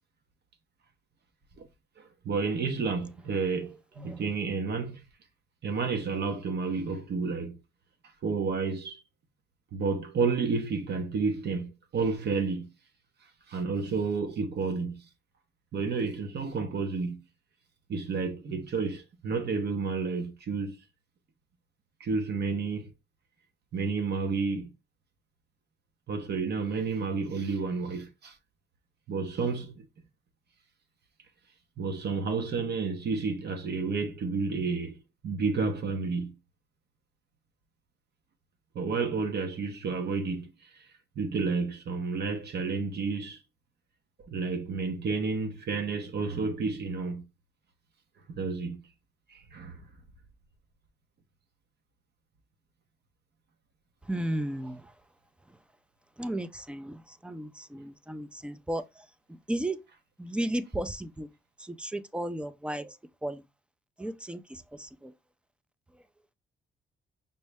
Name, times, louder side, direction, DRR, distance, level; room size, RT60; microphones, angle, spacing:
voice 1, 2.0-5.0 5.6-7.6 8.2-9.0 9.7-12.7 13.5-15.0 15.7-17.2 17.9-20.8 22.0-22.9 23.7-24.7 26.1-28.3 29.1-29.8 31.8-35.0 35.2-36.3 38.7-40.5 41.2-43.4 44.3-47.2 48.3-48.8 49.3-49.8, right 4 dB, 55° right, 0.9 m, -30 dB
voice 2, 54.1-54.8 56.2-57.0 57.2-58.8 59.5-59.8 60.2-61.3 61.8-62.9 63.2-63.4 64.0-64.4, right 1 dB, 5° right, 0.4 m, -33 dB
5.4 x 2.0 x 3.4 m
cardioid pair, 90°, 20 cm